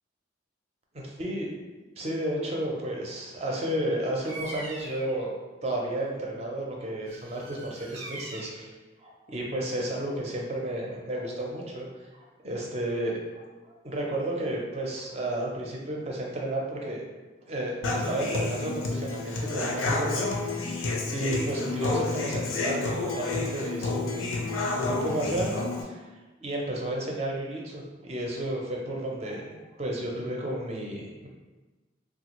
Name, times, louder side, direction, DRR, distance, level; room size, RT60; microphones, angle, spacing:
voice 1, 0.9-1.6 2.0-8.7 9.0-11.9 12.4-13.4 13.8-17.0 17.5-26.1 26.4-31.3, right 1 dB, 30° right, -1 dB, 0.5 m, -32 dB
Bird vocalization bird call bird song, 4.2-5.2 7.1-8.7, right 2 dB, 85° right, 0.6 m, -42 dB
Human voice / Acoustic guitar, 17.8-25.8, left 3 dB, 85° left, 0.5 m, -30 dB
3.3 x 2.3 x 2.9 m, 1.2 s
head